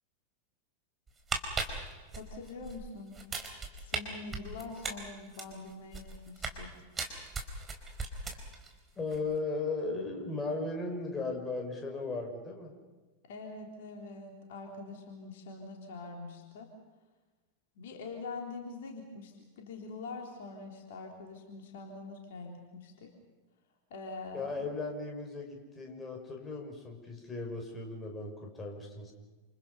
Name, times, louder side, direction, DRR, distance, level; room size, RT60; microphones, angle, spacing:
sound 1, 1.1-2.8 3.1-4.0 4.3-6.6 7.0-8.7 9.0-9.2, right 4 dB, 20° right, 4.5 m, -37 dB
voice 1, 2.2-3.2 3.8-6.7 13.2-16.7 17.8-23.1 23.9-24.7, left 3 dB, 55° left, 2 dB, 3.6 m, -44 dB
voice 2, 9.0-12.7 24.3-29.1, left 3 dB, 15° left, 2 dB, 6.1 m, -36 dB
28.5 x 28.5 x 5.6 m, 1.2 s
figure-of-eight pair, 90°, 0 cm